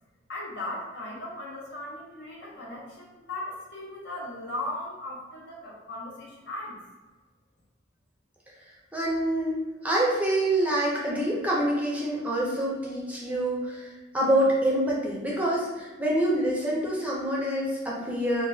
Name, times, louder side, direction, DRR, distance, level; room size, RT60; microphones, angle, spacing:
voice 1, 0.3-6.8, left 1 dB, 60° left, -3 dB, 0.8 m, -37 dB
voice 2, 8.9-18.5, right 1 dB, 10° right, -4 dB, 0.5 m, -26 dB
3.7 x 2.2 x 2.6 m, 1.2 s
head